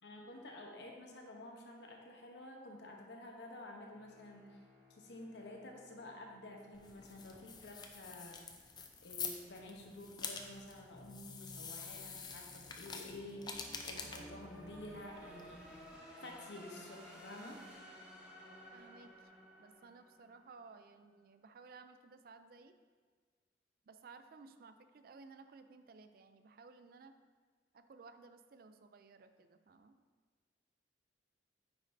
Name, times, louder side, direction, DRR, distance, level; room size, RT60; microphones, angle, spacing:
voice 1, 0.0-4.6 5.0-8.4 9.0-15.7 16.2-17.6, left 1 dB, 75° left, 1 dB, 1.0 m, -51 dB
sound 1, 3.9-7.8, left 3 dB, 35° right, 1.1 m, -66 dB
sound 2, 6.7-16.0, left 5 dB, 25° left, 0.5 m, -47 dB
sound 3, 10.2-20.8, equal, 5° right, 1.0 m, -56 dB
voice 2, 18.7-19.3 19.6-22.7 23.9-27.1 27.7-30.0, right 4 dB, 55° right, 9 dB, 0.4 m, -57 dB
9.2 x 5.1 x 2.7 m, 1.5 s
head